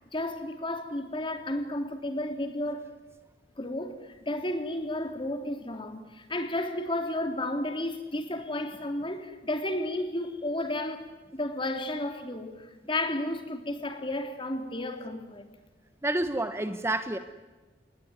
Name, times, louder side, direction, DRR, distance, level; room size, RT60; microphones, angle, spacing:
voice 1, 0.1-3.0 3.6-15.5, left 1 dB, 30° left, 3.3 m, -32 dB
voice 2, 16.0-17.2, right 1 dB, 15° right, 1.1 m, -29 dB
28.5 x 20.5 x 9.5 m
head